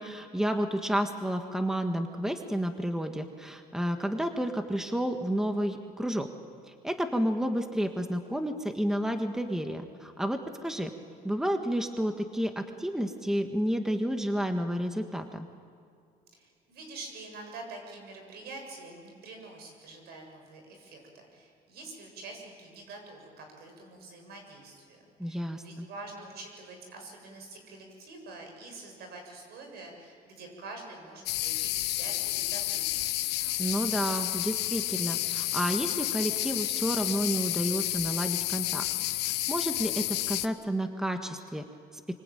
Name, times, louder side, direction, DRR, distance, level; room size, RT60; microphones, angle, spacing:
voice 1, 0.0-6.3 6.7-10.9 11.2-15.5 25.2-25.9 33.6-38.9 39.2-41.7, equal, 5° right, 6 dB, 1.7 m, -31 dB
voice 2, 16.4-33.1, right 2 dB, 70° right, 3 dB, 7.6 m, -46 dB
sound 1, 31.3-40.5, left 16 dB, 80° left, 0.9 m, -31 dB
25.5 x 25.0 x 9.2 m, 2.4 s
cardioid pair, 110°, 17 cm